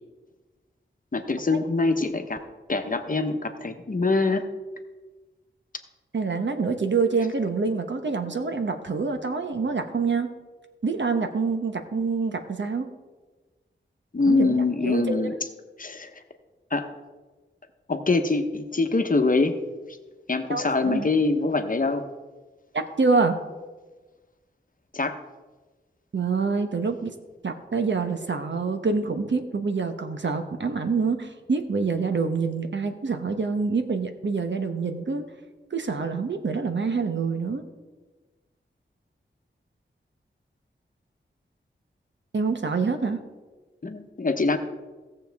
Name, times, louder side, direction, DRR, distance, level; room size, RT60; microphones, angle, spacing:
voice 1, 1.1-2.4 2.7-4.5 14.1-15.3 15.8-16.1 16.7-16.8 17.9-19.6 20.3-22.0 24.9-25.1 43.8-44.6, left 3 dB, 40° left, 6 dB, 1.0 m, -24 dB
voice 2, 6.1-10.3 10.8-12.9 14.3-15.3 20.5-21.1 22.7-23.4 26.1-27.1 27.4-35.2 35.7-37.6 42.3-43.2, right 4 dB, 65° right, 6 dB, 1.0 m, -26 dB
17.0 x 6.9 x 3.5 m, 1.3 s
wide cardioid pair, 65°, 20 cm